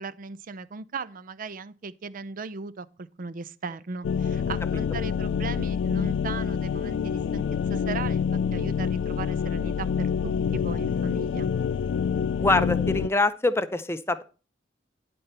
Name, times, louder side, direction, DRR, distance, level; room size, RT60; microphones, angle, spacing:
voice 1, 0.0-7.4 7.7-11.5, right 4 dB, 45° right, 0.5 m, -37 dB
sound 1, 4.0-13.1, left 6 dB, 75° left, 0.3 m, -27 dB
voice 2, 12.4-14.2, left 2 dB, 15° left, 0.6 m, -24 dB
10.5 x 4.3 x 6.6 m
head